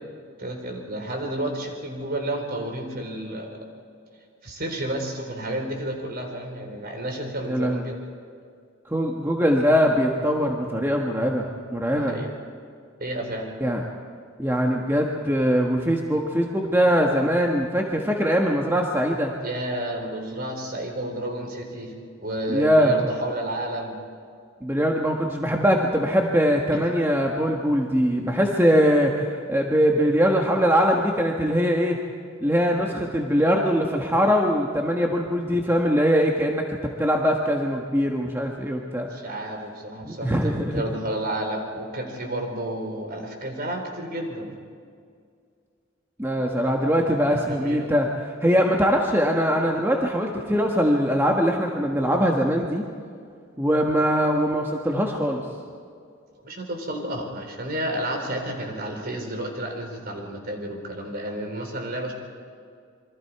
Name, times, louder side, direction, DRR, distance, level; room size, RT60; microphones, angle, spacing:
voice 1, 0.4-3.7 4.4-8.0 12.0-12.3 13.0-13.5 19.4-21.9 22.2-24.0 26.7-27.0 39.1-44.5 47.3-47.9 56.4-62.1, right 1 dB, 50° right, 3 dB, 3.9 m, -31 dB
voice 2, 7.5-7.8 8.9-12.2 13.6-13.8 14.4-19.3 22.5-22.9 24.6-32.0 32.4-39.1 40.0-40.8 46.2-48.1 48.4-52.8 53.6-55.4, equal, 10° right, 1 dB, 1.4 m, -22 dB
27.0 x 23.5 x 4.7 m, 2.2 s
head